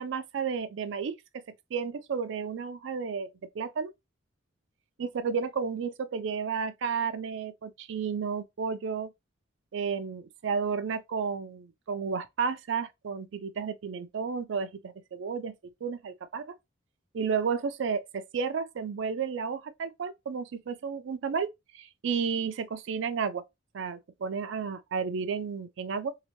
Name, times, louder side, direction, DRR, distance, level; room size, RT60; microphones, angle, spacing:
voice 1, 0.0-1.4 1.7-3.9 5.0-9.1 9.7-15.5 15.8-16.5 17.1-21.5 21.7-23.4 23.7-26.2, right 6 dB, 60° right, 0.4 m, -32 dB
2.8 x 2.1 x 2.9 m
head